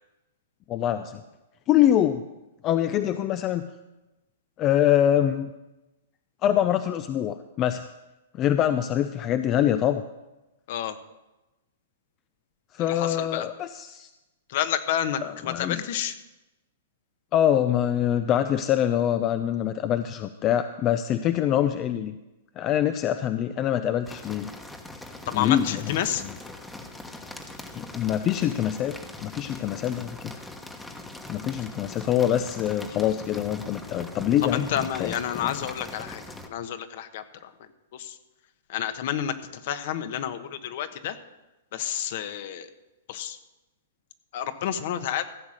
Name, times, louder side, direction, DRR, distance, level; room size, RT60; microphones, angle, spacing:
voice 1, 0.7-1.2 1.7-2.2 2.6-3.7 4.6-5.5 6.4-7.8 8.3-10.0 12.7-14.1 15.2-15.8 17.3-22.1 22.6-24.5 25.3-25.8 27.7-29.0 29.2-30.3 31.3-34.7 35.0-35.1, left 11 dB, 30° left, 10 dB, 0.5 m, -24 dB
voice 2, 12.8-13.5 14.5-16.1 25.3-26.2 34.5-36.2 36.5-37.5 37.9-38.2 38.7-39.3 39.6-41.2 41.7-42.7 43.1-43.4 44.3-45.2, left 10 dB, 55° left, 10 dB, 1.2 m, -29 dB
sound 1, 24.0-36.5, left 2 dB, 5° left, 1.2 m, -41 dB
15.5 x 7.2 x 6.5 m, 1.0 s
hypercardioid pair, 130°, 0 cm